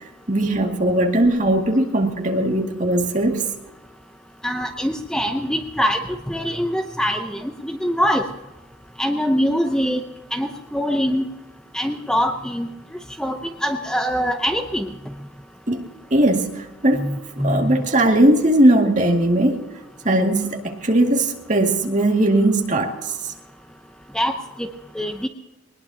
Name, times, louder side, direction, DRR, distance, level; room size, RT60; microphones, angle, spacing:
voice 1, 0.3-3.5 15.7-15.8 16.1-17.1 17.4-19.6 20.0-23.1, right 1 dB, 40° right, 1 dB, 2.2 m, -19 dB
voice 2, 4.4-8.2 9.0-10.0 10.3-11.3 11.7-12.7 13.2-14.9 17.0-17.8 24.1-24.7 24.9-25.3, equal, 5° left, 5 dB, 0.7 m, -23 dB
21.5 x 20.0 x 2.8 m, 1.1 s
head